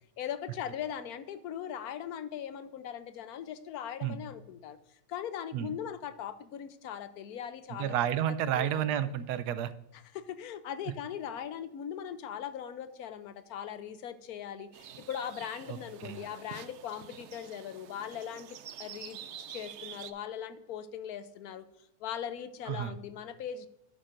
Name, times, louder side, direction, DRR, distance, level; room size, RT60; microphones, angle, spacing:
voice 1, 0.2-4.8 5.1-8.0 8.6-8.8 9.9-21.7 22.0-23.7, left 9 dB, 75° left, 13 dB, 1.1 m, -40 dB
voice 2, 7.8-9.7 15.7-16.2 22.7-22.9, right 10 dB, 90° right, 13 dB, 1.2 m, -31 dB
sound 1, 14.7-20.1, right 9 dB, 65° right, 0.7 m, -47 dB
11.5 x 8.7 x 2.5 m, 0.90 s
omnidirectional pair, 1.7 m